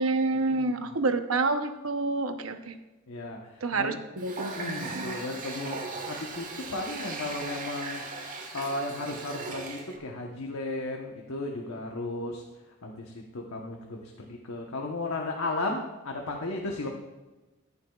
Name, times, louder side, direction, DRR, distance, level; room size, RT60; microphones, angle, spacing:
voice 1, 0.0-2.7 3.6-5.1, right 3 dB, 80° right, 8 dB, 0.9 m, -28 dB
voice 2, 3.1-4.0 4.5-5.8 6.1-8.0 8.5-12.4 12.8-16.9, left 2 dB, 90° left, 0 dB, 1.1 m, -35 dB
Water tap faucet, 4.2-10.0, right 3 dB, 40° right, 1.4 m, -38 dB
14.0 x 11.0 x 2.4 m, 1.1 s
head